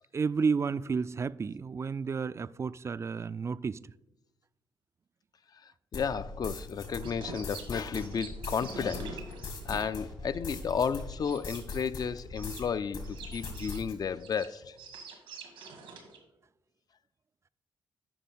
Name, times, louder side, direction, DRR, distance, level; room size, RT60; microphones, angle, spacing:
voice 1, 0.1-3.9, right 5 dB, 30° right, 0.3 m, -31 dB
sound 1, 5.9-12.7 12.9-13.9, left 3 dB, 65° left, 2.2 m, -41 dB
voice 2, 5.9-9.2 9.6-14.8, left 6 dB, 45° left, 0.4 m, -33 dB
sound 2, 7.0-11.6 12.4-12.6 13.0-16.2, right 4 dB, 90° right, 1.6 m, -46 dB
8.5 x 5.6 x 5.4 m
supercardioid pair, 50°, 9 cm